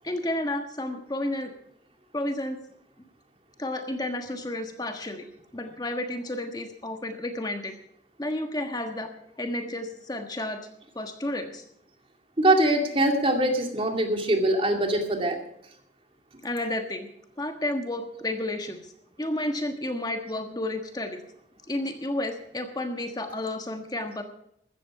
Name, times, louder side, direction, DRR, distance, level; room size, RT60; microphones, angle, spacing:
voice 1, 0.0-1.5 2.1-2.6 3.6-5.3 5.5-7.7 8.2-9.1 9.4-10.7 10.9-11.6 16.4-17.1 17.4-18.9 19.2-21.2 21.7-24.2, left 1 dB, 20° left, 5 dB, 1.4 m, -31 dB
voice 2, 12.4-15.4, right 1 dB, 30° right, 4 dB, 2.4 m, -23 dB
15.5 x 13.5 x 4.8 m, 0.72 s
head